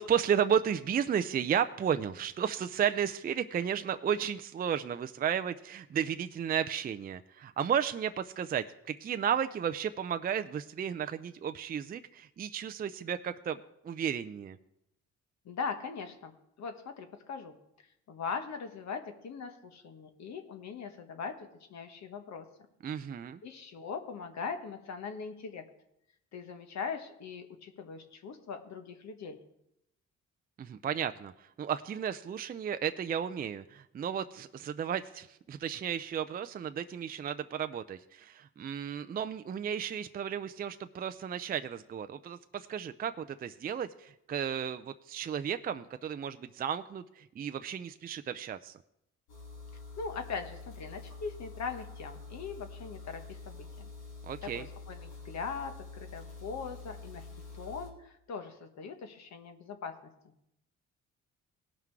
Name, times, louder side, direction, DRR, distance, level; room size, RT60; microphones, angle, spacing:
voice 1, 0.0-14.6 22.8-23.4 30.6-48.8 54.2-54.7, right 8 dB, 30° right, 10 dB, 0.4 m, -33 dB
voice 2, 15.4-17.6 18.1-22.5 23.4-25.6 26.3-29.4 50.0-53.9 54.4-57.3 57.5-60.0, left 5 dB, 65° left, 6 dB, 1.3 m, -40 dB
sound 1, 49.3-57.9, left 3 dB, 85° left, 2.8 m, -47 dB
17.5 x 5.8 x 4.7 m, 0.80 s
cardioid pair, 90°, 30 cm